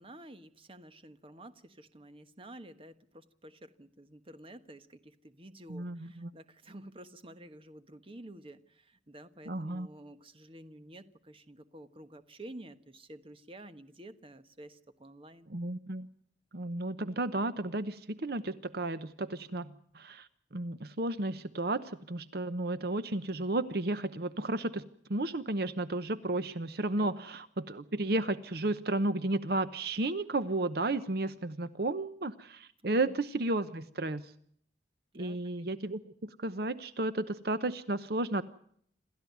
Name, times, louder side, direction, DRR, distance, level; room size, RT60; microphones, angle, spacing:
voice 1, 0.0-15.5 27.0-27.3 32.8-33.1 35.1-35.4, right 1 dB, 30° right, 10 dB, 1.2 m, -51 dB
voice 2, 5.7-6.3 9.5-9.9 15.5-16.1 16.5-24.8 25.1-34.3 35.1-38.4, right 2 dB, 60° right, 13 dB, 0.9 m, -33 dB
27.5 x 14.0 x 9.4 m, 0.65 s
head